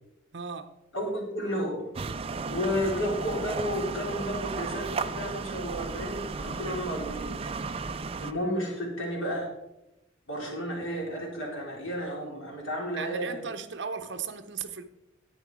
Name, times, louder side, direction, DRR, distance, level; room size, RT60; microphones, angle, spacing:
voice 1, 0.3-0.8 13.0-14.8, right 6 dB, 60° right, 0.8 m, -36 dB
voice 2, 0.9-1.9 2.5-7.4 8.2-9.5 10.3-13.4, equal, 85° left, 4.0 m, -32 dB
sound 1, 1.9-8.3, right 4 dB, 30° right, 0.4 m, -34 dB
10.5 x 9.2 x 4.8 m
head